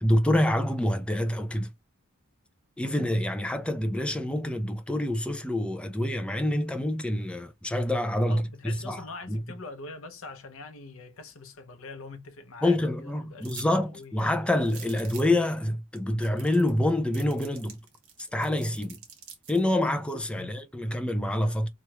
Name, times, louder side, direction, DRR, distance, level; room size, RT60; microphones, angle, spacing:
voice 1, 0.0-1.7 2.8-9.0 9.3-9.4 12.6-17.8 18.3-19.0 19.5-21.7, left 1 dB, 5° left, 0.4 m, -27 dB
voice 2, 8.2-14.3 20.3-20.6, left 3 dB, 65° left, 0.7 m, -44 dB
sound 1, 13.4-13.7 14.0-14.1 14.6-15.4 16.0-16.1 16.2-16.8 17.1-19.6, right 7 dB, 80° right, 1.2 m, -46 dB
3.1 x 2.4 x 2.8 m
head